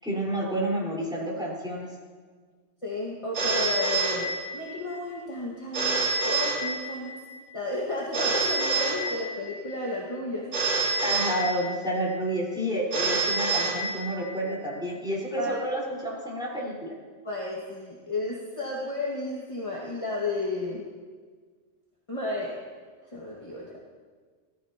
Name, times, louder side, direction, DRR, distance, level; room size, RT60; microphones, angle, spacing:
voice 1, 0.0-1.9 11.0-16.9, right 1 dB, 5° right, -5 dB, 4.6 m, -30 dB
voice 2, 2.8-6.0 6.2-7.2 7.5-10.5 15.4-15.7 17.2-20.8 22.1-22.5 23.1-23.8, left 2 dB, 25° left, -6 dB, 2.0 m, -32 dB
Telephone, 3.3-4.8 5.7-7.2 8.1-9.6 10.5-12.0 12.9-14.4, right 3 dB, 75° right, 4.6 m, -27 dB
19.0 x 15.0 x 3.0 m, 1.5 s
omnidirectional pair, 1.2 m